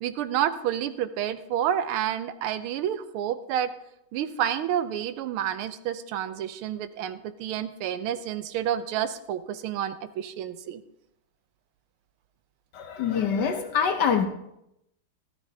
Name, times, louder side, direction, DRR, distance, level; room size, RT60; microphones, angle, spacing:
voice 1, 0.0-3.7 4.1-10.8, right 10 dB, 80° right, 12 dB, 1.5 m, -29 dB
voice 2, 12.7-14.3, left 7 dB, 65° left, 5 dB, 1.2 m, -25 dB
13.5 x 13.0 x 2.7 m, 0.82 s
omnidirectional pair, 2.4 m